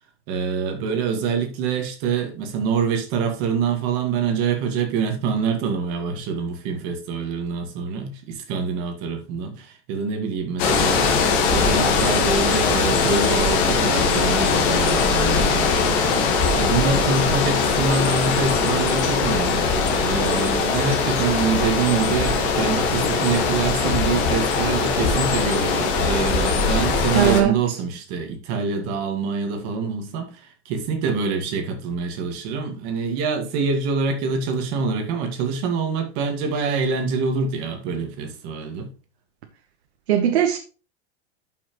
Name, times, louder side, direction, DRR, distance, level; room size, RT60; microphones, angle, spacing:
voice 1, 0.3-11.1 11.4-19.7 20.1-38.9, right 5 dB, 35° right, 1.9 m, -25 dB
sound 1, 10.6-27.4, left 4 dB, 35° left, 1.5 m, -21 dB
voice 2, 27.1-27.6 40.1-40.6, right 10 dB, 70° right, 1.2 m, -19 dB
11.5 x 5.9 x 3.1 m
supercardioid pair, 175°, 33 cm